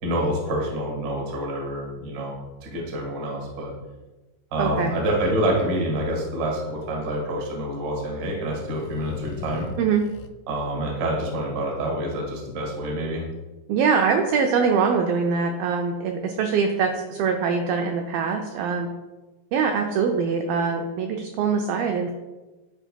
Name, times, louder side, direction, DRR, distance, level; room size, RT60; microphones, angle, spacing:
voice 1, 0.0-3.7 4.5-9.7 10.5-13.2, right 1 dB, 60° right, -1 dB, 1.1 m, -27 dB
voice 2, 4.6-4.9 9.8-10.0 13.7-18.9 19.5-22.1, right 5 dB, 90° right, 3 dB, 2.0 m, -23 dB
sound 1, 4.8-6.1 8.3-10.3, left 6 dB, 85° left, 2.0 m, -39 dB
11.5 x 4.5 x 2.3 m, 1.1 s
omnidirectional pair, 4.6 m